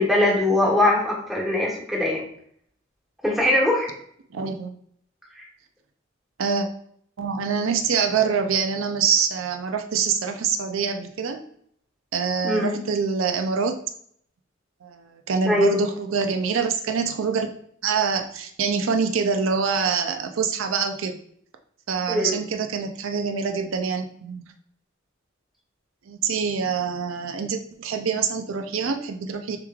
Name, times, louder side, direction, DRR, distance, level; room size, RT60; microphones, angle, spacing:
voice 1, 0.0-2.2 3.2-3.9 5.4-5.5 12.4-12.8 15.4-15.8 22.1-22.4, left 2 dB, ahead, -4 dB, 1.2 m, -21 dB
voice 2, 4.3-4.7 6.4-6.7 7.2-11.4 12.1-13.8 14.8-17.5 17.8-21.2 21.9-24.5 26.1-29.6, right 5 dB, 80° right, 6 dB, 0.5 m, -25 dB
6.8 x 3.1 x 2.3 m, 0.65 s
head